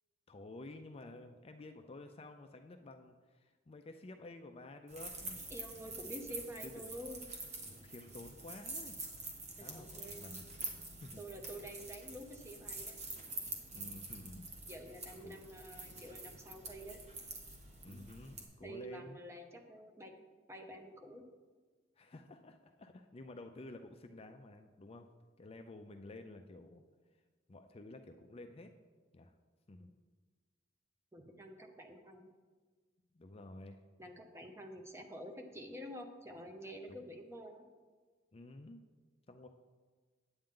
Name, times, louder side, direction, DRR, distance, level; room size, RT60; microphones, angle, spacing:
voice 1, 0.3-5.4 5.7-6.0 6.6-6.8 7.7-9.0 9.6-10.5 11.0-11.2 13.7-14.5 15.2-15.4 17.8-19.2 22.0-25.1 25.4-26.8 27.5-28.7 29.1-29.3 29.7-29.9 33.1-33.8 36.9-37.0 38.3-38.8 39.3-39.5, left 2 dB, 30° left, 6 dB, 0.4 m, -51 dB
sound 1, 4.9-18.4, right 3 dB, 35° right, 1.3 m, -47 dB
voice 2, 5.5-7.2 9.6-10.2 11.2-13.0 14.7-17.0 18.6-20.1 20.5-21.2 31.1-32.3 34.0-37.7, equal, 15° right, 3 dB, 0.8 m, -48 dB
8.8 x 8.7 x 3.7 m, 1.4 s
head